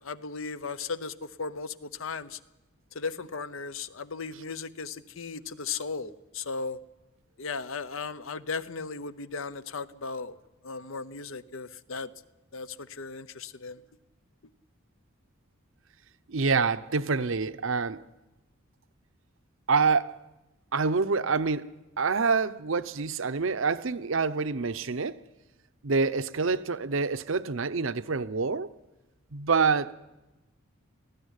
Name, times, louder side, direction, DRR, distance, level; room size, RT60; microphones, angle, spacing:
voice 1, 0.0-2.4 2.9-6.8 7.4-10.3 10.6-12.1 12.5-13.8, left 4 dB, 65° left, 14 dB, 0.8 m, -36 dB
voice 2, 16.3-18.0 19.7-20.2 20.7-21.7 22.0-25.2 25.8-28.7 29.3-29.9, right 4 dB, 65° right, 14 dB, 0.7 m, -26 dB
19.0 x 14.5 x 9.9 m, 1.1 s
head